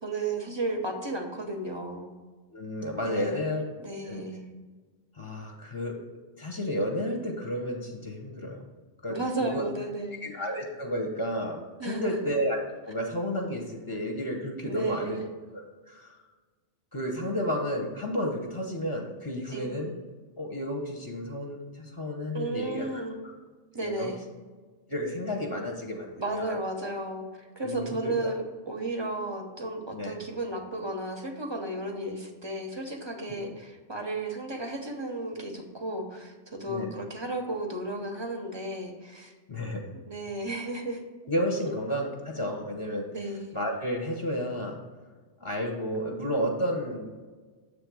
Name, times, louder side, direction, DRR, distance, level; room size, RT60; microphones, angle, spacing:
voice 1, 0.0-2.1 3.0-3.4 3.8-4.4 9.1-10.2 11.8-12.2 14.6-15.3 19.5-19.8 22.3-23.2 23.7-24.2 26.2-39.3 40.1-41.0 43.1-43.6, right 2 dB, 25° right, 3 dB, 0.8 m, -34 dB
voice 2, 2.5-3.6 4.0-4.2 5.1-6.0 6.4-8.6 9.0-9.6 10.2-12.6 12.9-15.2 15.5-16.2 16.9-19.9 20.4-23.0 23.7-24.1 24.9-26.5 27.6-28.3 29.9-30.2 33.3-33.5 36.7-36.9 39.5-39.9 41.3-43.1 43.5-44.8 45.4-47.2, equal, 20° left, 1 dB, 0.8 m, -32 dB
7.6 x 3.5 x 6.1 m, 1.4 s
omnidirectional pair, 1.2 m